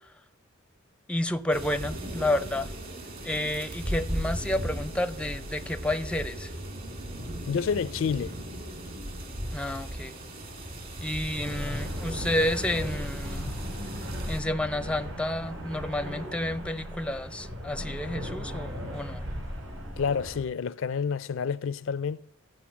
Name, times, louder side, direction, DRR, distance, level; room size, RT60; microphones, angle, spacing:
voice 1, 1.1-2.7 3.2-6.5 9.5-10.2 11.0-13.5 14.3-19.2, left 1 dB, 5° left, 0.5 m, -30 dB
sound 1, 1.5-14.4, right 1 dB, 45° right, 2.5 m, -37 dB
voice 2, 7.5-8.3 20.0-22.2, left 6 dB, 65° left, 0.4 m, -29 dB
sound 2, 11.1-20.4, equal, 75° right, 4.9 m, -37 dB
13.5 x 5.4 x 8.4 m
head